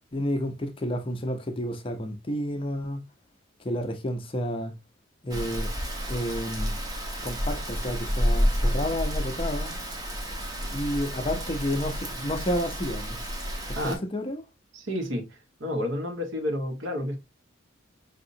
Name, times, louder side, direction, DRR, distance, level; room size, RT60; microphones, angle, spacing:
voice 1, 0.1-3.0 3.6-4.7 5.2-5.7 6.1-6.8 7.2-9.8 10.7-13.2 13.8-14.4, equal, 25° left, 0.6 m, -30 dB
Rain, 5.3-14.0, equal, 20° right, 0.8 m, -30 dB
voice 2, 14.7-17.2, left 1 dB, 65° right, 1.3 m, -30 dB
5.2 x 2.8 x 2.6 m
head